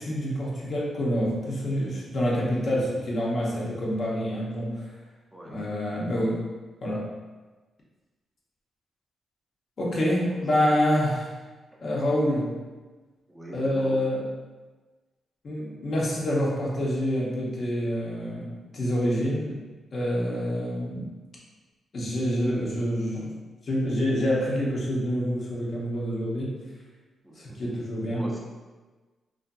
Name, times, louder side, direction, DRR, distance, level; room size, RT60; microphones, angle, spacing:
voice 1, 0.0-4.9 5.5-6.4 6.8-7.1 9.8-11.3 11.8-12.5 13.5-14.3 15.4-19.6 19.9-21.1 21.9-23.3 23.6-26.6 27.4-28.3, equal, 55° left, -5 dB, 0.7 m, -27 dB
voice 2, 5.3-5.7 10.3-10.4 11.7-11.8 13.3-14.0 20.2-20.5 27.2-27.7 28.1-28.4, equal, 10° right, -3 dB, 0.6 m, -41 dB
2.5 x 2.5 x 2.2 m, 1.3 s
cardioid pair, 60°, 0 cm